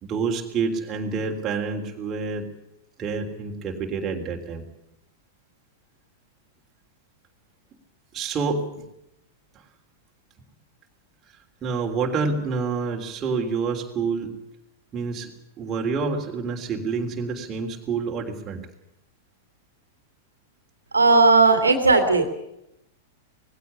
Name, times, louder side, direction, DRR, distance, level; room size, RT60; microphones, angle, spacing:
voice 1, 0.0-2.5 3.0-4.6 8.1-8.8 9.5-9.6 11.6-14.3 14.9-15.3 15.6-18.7, right 4 dB, 25° right, 1 dB, 3.5 m, -28 dB
voice 2, 20.9-22.3, right 3 dB, 80° right, 6 dB, 2.6 m, -16 dB
20.0 x 16.0 x 10.0 m, 0.84 s
figure-of-eight pair, 95°, 0 cm